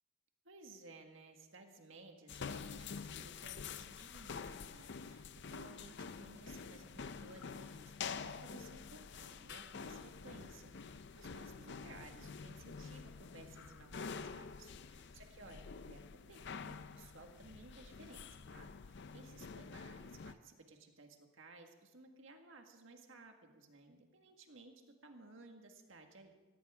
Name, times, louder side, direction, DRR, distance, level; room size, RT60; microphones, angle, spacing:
voice 1, 0.4-26.3, right 2 dB, 65° right, 4 dB, 1.8 m, -58 dB
sound 1, 2.3-20.3, left 5 dB, 55° left, 0.5 m, -48 dB
sound 2, 4.1-4.5 7.2-7.6, left 6 dB, 90° left, 1.7 m, -63 dB
17.5 x 16.5 x 3.7 m, 1.3 s
head